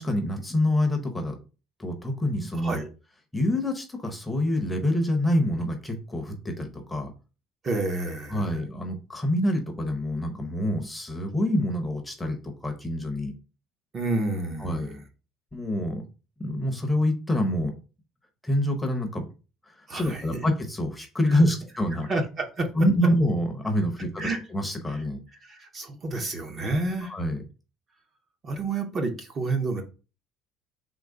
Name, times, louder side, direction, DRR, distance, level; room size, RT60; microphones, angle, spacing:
voice 1, 0.0-1.4 1.8-2.8 3.3-7.1 8.3-13.3 14.6-14.9 15.5-16.0 16.4-17.7 18.4-19.3 19.7-22.1 22.7-25.2 27.1-27.4, left 1 dB, 5° left, 0.7 m, -26 dB
voice 2, 2.5-2.9 7.6-8.6 13.9-15.0 19.9-20.5 21.3-21.4 22.1-22.9 24.2-24.4 24.9-25.1 25.4-27.1 28.4-29.8, right 2 dB, 25° right, 0.7 m, -30 dB
3.7 x 3.0 x 4.7 m
cardioid pair, 160°, 0 cm